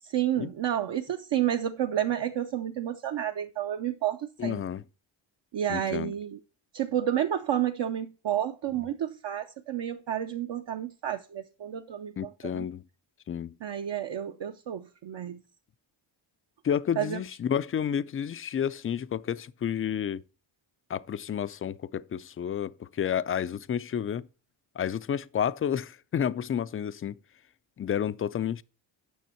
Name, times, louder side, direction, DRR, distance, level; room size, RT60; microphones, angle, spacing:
voice 1, 0.0-4.6 5.5-6.4 6.7-12.6 13.6-15.4 17.0-17.2, right 10 dB, 60° right, 0.8 m, -30 dB
voice 2, 4.4-4.8 5.7-6.1 12.2-12.8 13.3-13.5 16.6-20.2 20.9-24.3 24.8-27.2 27.8-28.6, left 8 dB, 30° left, 0.3 m, -30 dB
9.4 x 6.2 x 4.3 m
cardioid pair, 95°, 49 cm